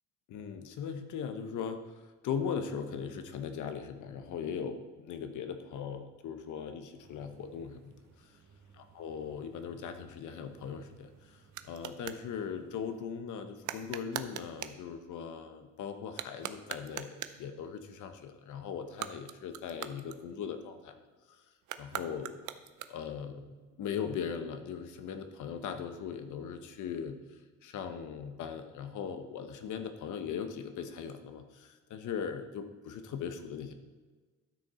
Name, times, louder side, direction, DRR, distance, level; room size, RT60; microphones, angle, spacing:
voice 1, 0.3-8.4 8.8-21.0 21.3-21.4 21.8-22.4 22.9-23.5 23.8-33.7, left 7 dB, 80° left, 8 dB, 1.1 m, -39 dB
sound 1, 6.9-13.0, right 6 dB, 65° right, 1.7 m, -61 dB
sound 2, 10.5-12.3 13.6-14.8 16.0-17.5 18.8-20.7 21.6-23.2, right 12 dB, 80° right, 0.6 m, -42 dB
12.0 x 6.6 x 4.3 m, 1.3 s
cardioid pair, 90°, 30 cm